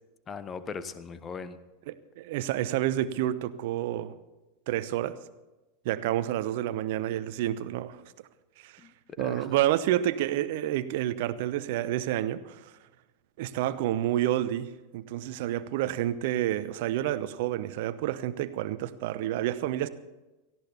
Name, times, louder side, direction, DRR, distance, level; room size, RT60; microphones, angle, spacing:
voice 1, 0.3-1.6 8.8-9.5, left 5 dB, 25° left, 13 dB, 1.1 m, -39 dB
voice 2, 1.9-4.1 4.7-5.2 5.8-8.0 8.6-8.8 9.2-12.7 13.4-19.9, right 13 dB, 50° right, 15 dB, 0.9 m, -29 dB
18.0 x 15.0 x 4.3 m, 1.1 s
figure-of-eight pair, 90°, 0 cm